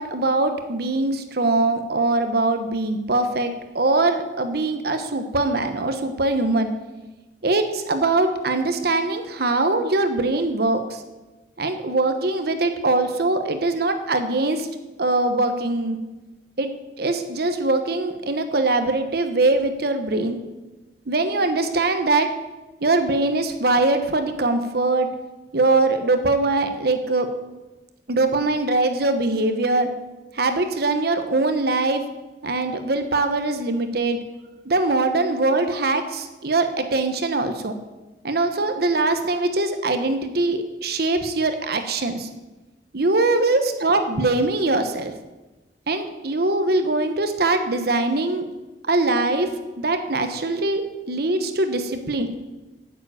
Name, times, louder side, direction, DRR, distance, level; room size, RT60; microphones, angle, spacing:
voice 1, 0.0-6.7 7.4-11.0 11.6-14.7 15.0-16.0 16.6-16.7 17.0-20.4 21.1-22.3 22.8-25.1 25.5-27.3 28.1-29.9 30.3-32.0 32.4-34.2 34.6-37.7 38.2-42.3 42.9-45.1 45.9-48.5 48.9-49.5 49.8-50.8 51.1-52.3, right 2 dB, 60° right, 7 dB, 1.1 m, -22 dB
9.1 x 7.5 x 8.3 m, 1.1 s
head